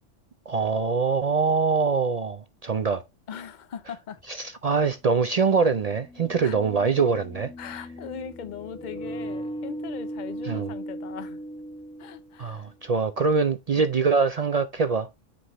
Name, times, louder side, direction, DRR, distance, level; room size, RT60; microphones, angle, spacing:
voice 1, 0.5-3.0 4.3-7.5 10.5-10.7 12.4-15.1, right 5 dB, 65° right, 0.4 m, -24 dB
voice 2, 3.3-4.2 6.4-6.6 7.6-11.4 12.0-12.7 13.7-13.8, left 7 dB, 45° left, 0.7 m, -39 dB
sound 1, 4.2-4.3 5.8-12.6, right 1 dB, 5° left, 0.5 m, -38 dB
7.8 x 4.9 x 3.0 m
omnidirectional pair, 1.3 m